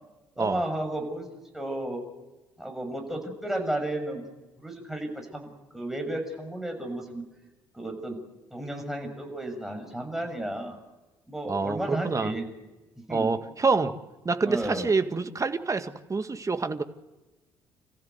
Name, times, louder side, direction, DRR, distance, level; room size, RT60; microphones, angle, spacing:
voice 1, 0.4-2.0 2.6-4.2 4.6-5.5 5.7-7.2 7.7-8.2 8.5-10.8 11.3-12.5 13.1-13.3 14.4-14.9, right 1 dB, 5° right, 3 dB, 6.9 m, -33 dB
voice 2, 11.5-12.3 13.1-13.9 14.3-16.8, right 4 dB, 25° right, 9 dB, 1.8 m, -27 dB
29.5 x 15.0 x 8.1 m, 1.1 s
hypercardioid pair, 50°, 12 cm